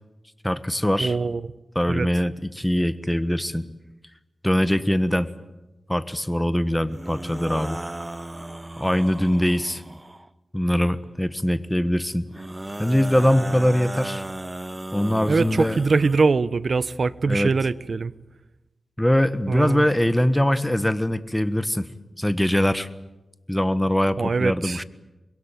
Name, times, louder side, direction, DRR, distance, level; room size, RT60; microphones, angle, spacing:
voice 1, 0.4-1.2 1.7-3.7 4.4-5.3 5.9-7.8 8.8-9.8 10.5-12.4 12.8-14.2 14.9-15.8 17.3-17.5 19.0-21.9 22.2-22.9 23.5-24.8, equal, 5° left, 13 dB, 1.5 m, -22 dB
voice 2, 1.0-1.5 1.9-2.1 15.3-18.1 19.5-19.9 24.2-24.8, right 4 dB, 65° right, 17 dB, 0.9 m, -23 dB
sound 1, 6.9-10.3 12.3-16.2, right 1 dB, 20° right, 1.2 m, -35 dB
25.0 x 22.0 x 9.1 m, 1.0 s
wide cardioid pair, 70°, 0 cm